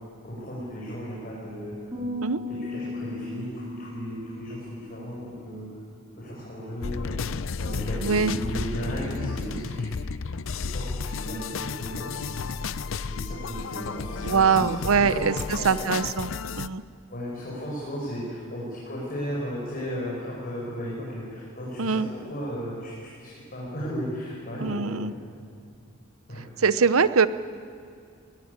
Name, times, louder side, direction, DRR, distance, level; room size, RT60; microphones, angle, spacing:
voice 1, 0.2-1.9 2.5-5.7 6.2-10.0 10.7-15.2 15.6-16.0 17.1-25.2 26.3-26.5, equal, 45° left, -6 dB, 5.7 m, -35 dB
sound 1, 1.9-5.3, left 2 dB, 20° right, 5.9 m, -36 dB
sound 2, 6.8-16.7, left 4 dB, 65° left, 0.6 m, -32 dB
voice 2, 8.0-8.4 14.2-16.3 16.6-16.8 21.8-22.1 24.6-25.1 26.3-27.3, right 5 dB, 80° right, 14 dB, 0.8 m, -23 dB
21.0 x 19.0 x 9.6 m, 2.4 s
head